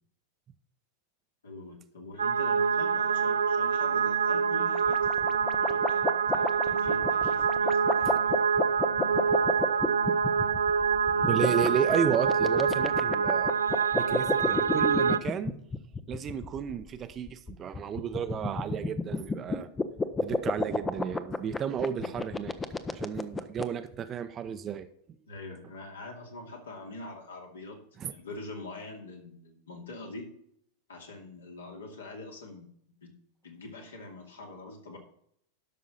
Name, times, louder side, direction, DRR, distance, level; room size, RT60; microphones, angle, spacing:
voice 1, 1.4-8.4 11.1-12.0 22.0-22.1 25.3-27.8 28.1-30.3 30.9-32.7 33.0-33.1 33.4-35.0, left 2 dB, 70° left, 1 dB, 2.3 m, -44 dB
sound 1, 2.2-15.2, right 6 dB, 75° right, 0.4 m, -26 dB
sound 2, 4.7-23.6, left 3 dB, 15° left, 0.7 m, -31 dB
voice 2, 11.3-13.5 14.0-15.5 16.1-19.7 20.2-22.5 22.9-24.9 28.0-28.1, right 8 dB, 25° right, 10 dB, 0.7 m, -32 dB
12.0 x 6.1 x 4.0 m, 0.69 s
figure-of-eight pair, 90°, 0 cm